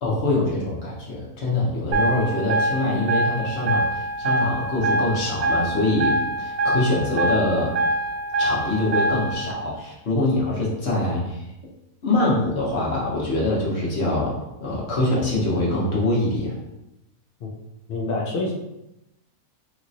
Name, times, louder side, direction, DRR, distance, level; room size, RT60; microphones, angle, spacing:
voice 1, 0.0-7.7 8.4-11.4 12.0-14.3 14.6-16.5, left 2 dB, 50° left, -5 dB, 1.1 m, -24 dB
sound 1, 1.9-9.5, right 1 dB, 75° right, 1.0 m, -24 dB
voice 2, 17.9-18.5, left 2 dB, 75° left, -2 dB, 0.5 m, -26 dB
3.1 x 2.9 x 2.5 m, 0.89 s
omnidirectional pair, 1.6 m